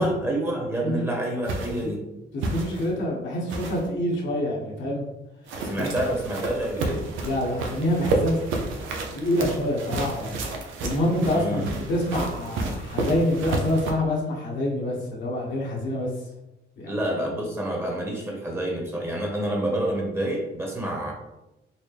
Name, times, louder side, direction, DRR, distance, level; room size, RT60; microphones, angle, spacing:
voice 1, 0.0-2.0 5.6-7.0 11.2-11.8 16.9-21.1, right 1 dB, 10° right, -1 dB, 1.1 m, -28 dB
sound 1, 1.4-1.8 2.4-2.9 3.5-3.9 5.5-13.9, right 2 dB, 85° right, 0.6 m, -30 dB
voice 2, 2.5-5.1 5.7-5.9 7.2-8.4 9.1-10.4 10.8-16.1 16.8-16.9, left 1 dB, 70° left, -3 dB, 1.2 m, -26 dB
4.2 x 2.2 x 3.2 m, 0.92 s
cardioid pair, 90°, 20 cm